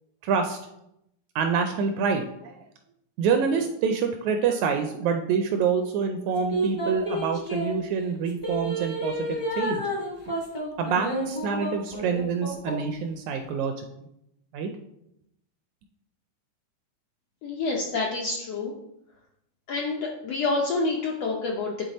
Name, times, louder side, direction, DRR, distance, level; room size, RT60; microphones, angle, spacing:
voice 1, 0.2-0.6 1.3-2.6 3.2-9.8 10.3-10.4 10.8-13.8 14.5-14.7, right 6 dB, 80° right, 5 dB, 1.7 m, -26 dB
sound 1, 6.5-7.7 8.4-12.9 13.4-13.5, right 1 dB, 40° left, 0.6 m, -30 dB
voice 2, 17.4-18.8 19.7-21.8, left 3 dB, 75° left, -1 dB, 1.4 m, -28 dB
9.7 x 3.5 x 4.1 m, 0.81 s
omnidirectional pair, 3.6 m